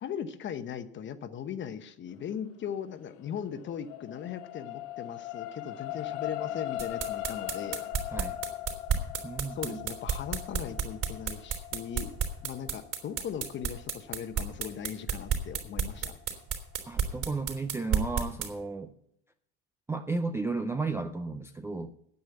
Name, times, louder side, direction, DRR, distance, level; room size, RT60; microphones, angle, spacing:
voice 1, 0.0-7.8 9.5-12.1 12.4-16.1, left 8 dB, 35° left, 11 dB, 1.0 m, -38 dB
sound 1, 3.1-15.6 16.1-16.2, left 14 dB, 85° left, 0.9 m, -40 dB
sound 2, 6.8-18.5, right 7 dB, 40° right, 3.4 m, -31 dB
voice 2, 9.2-9.8 16.8-18.9 19.9-21.9, right 3 dB, 10° right, 7 dB, 0.4 m, -33 dB
9.4 x 8.5 x 8.1 m, 0.76 s
supercardioid pair, 135°, 35 cm